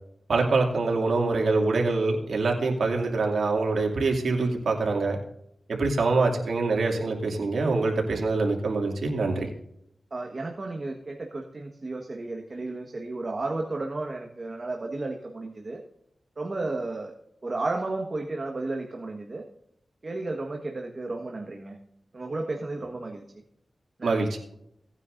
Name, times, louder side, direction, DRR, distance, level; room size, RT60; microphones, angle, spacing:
voice 1, 0.3-5.2 5.7-9.5 24.0-24.3, right 3 dB, 90° right, 1 dB, 2.5 m, -25 dB
voice 2, 10.1-15.8 16.4-17.1 17.4-19.5 20.0-21.8 22.1-23.2 24.0-24.3, right 2 dB, 45° right, 1 dB, 1.5 m, -33 dB
18.0 x 9.7 x 2.6 m, 0.75 s
wide cardioid pair, 75°, 0 cm